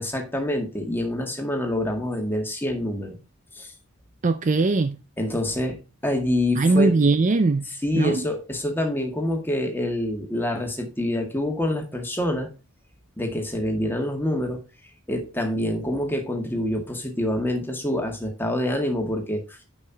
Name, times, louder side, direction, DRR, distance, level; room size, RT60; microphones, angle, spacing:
voice 1, 0.0-3.2 3.5-3.7 5.2-6.9 7.6-12.5 13.2-14.6 15.1-19.6, left 1 dB, 10° left, 1.9 m, -26 dB
voice 2, 4.2-5.0 6.6-7.6 8.0-8.2, right 3 dB, 35° right, 0.4 m, -20 dB
9.6 x 5.7 x 2.8 m
head